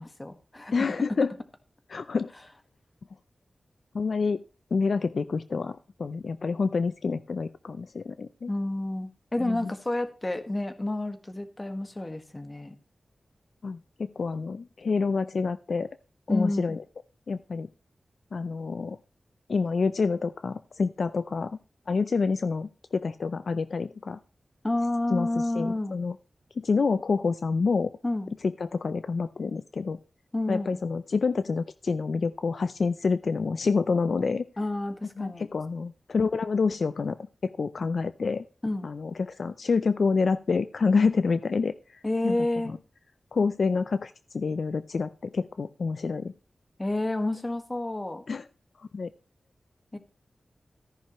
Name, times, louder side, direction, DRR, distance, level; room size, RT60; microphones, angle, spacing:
voice 1, 0.0-0.9 8.5-12.7 16.3-16.8 24.6-26.0 28.0-28.3 30.3-30.8 34.6-35.5 38.6-38.9 42.0-42.8 46.8-48.2 49.9-50.0, left 2 dB, 25° left, 8 dB, 1.6 m, -30 dB
voice 2, 0.7-1.3 1.9-2.3 3.9-4.4 4.7-8.5 9.4-9.7 13.6-15.9 16.3-16.8 17.3-17.7 18.3-19.0 19.5-21.6 21.9-24.2 25.1-25.3 25.6-26.1 26.6-27.9 28.6-30.0 30.5-34.4 35.2-37.2 37.4-38.4 38.8-41.7 42.2-42.4 42.7-42.8 43.3-46.3 48.3-48.4 48.9-49.1, left 4 dB, 70° left, 13 dB, 0.5 m, -27 dB
14.0 x 10.5 x 3.0 m, 0.34 s
wide cardioid pair, 85°, 0 cm